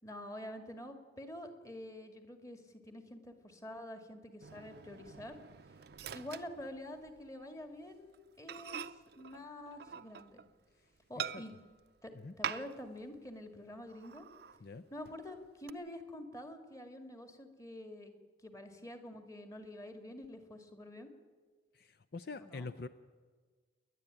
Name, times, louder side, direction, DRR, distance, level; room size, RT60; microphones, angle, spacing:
voice 1, 0.0-5.4 6.1-8.8 9.2-10.4 11.1-11.5 12.0-12.1 12.4-14.3 14.9-18.1 18.4-21.1 22.4-22.7, left 1 dB, 20° left, 7 dB, 1.9 m, -47 dB
Microwave oven, 4.4-7.3 7.6-7.8 8.1-8.2 8.5-10.6 11.2-11.8 12.4-13.0 13.3-13.4 13.9-14.6 15.1-15.7, right 8 dB, 60° right, 0.6 m, -45 dB
voice 2, 21.7-22.9, left 3 dB, 55° left, 11 dB, 0.6 m, -44 dB
29.5 x 11.0 x 8.9 m, 1.5 s
head